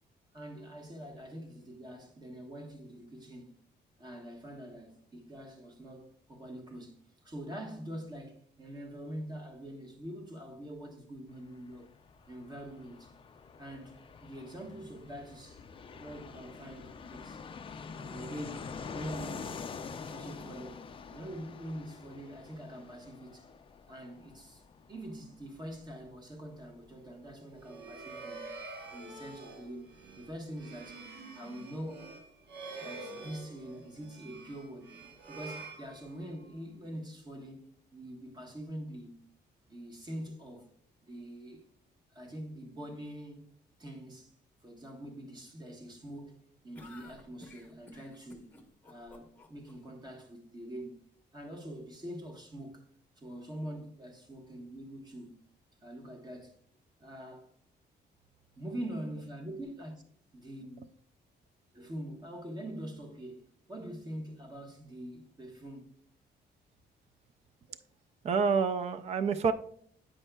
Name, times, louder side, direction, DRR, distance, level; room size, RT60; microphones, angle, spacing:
voice 1, 0.3-3.5 4.0-7.0 7.2-11.9 12.3-13.1 13.6-14.0 14.2-15.7 15.9-17.5 18.0-19.8 20.1-23.5 23.9-24.6 24.9-28.6 28.9-31.0 31.3-32.2 32.8-34.9 35.3-39.2 39.7-40.7 41.0-41.7 42.1-43.5 43.8-44.3 44.6-48.5 48.8-51.0 51.3-52.8 53.2-55.4 55.8-56.6 57.0-57.5 58.6-60.0 60.3-60.9 61.7-63.4 63.7-65.9, right 1 dB, 25° right, 1.2 m, -44 dB
Fixed-wing aircraft airplane, 11.3-29.7 29.9-30.0 30.2-30.9, left 5 dB, 30° left, 0.4 m, -46 dB
sound 1, 27.5-36.5, right 3 dB, 75° right, 1.1 m, -47 dB
sound 2, 46.7-49.7, left 2 dB, 10° left, 0.9 m, -53 dB
voice 2, 68.2-69.5, right 5 dB, 40° right, 0.3 m, -27 dB
8.9 x 5.3 x 2.2 m
cardioid pair, 130°, 17 cm